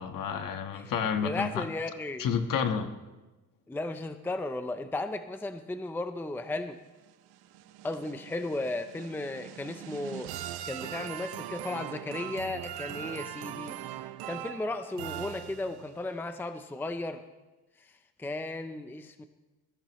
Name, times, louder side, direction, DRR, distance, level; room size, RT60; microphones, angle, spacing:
voice 1, 0.0-1.6 2.2-2.9, left 7 dB, 55° left, 6 dB, 1.5 m, -30 dB
voice 2, 1.2-2.3 3.7-6.8 7.8-13.8 14.3-17.2 17.8-17.9 18.2-19.2, left 2 dB, 5° left, 9 dB, 0.6 m, -35 dB
sound 1, 7.1-16.0, right 12 dB, 75° right, 0.8 m, -41 dB
21.5 x 14.5 x 3.1 m, 1.1 s
cardioid pair, 125°, 38 cm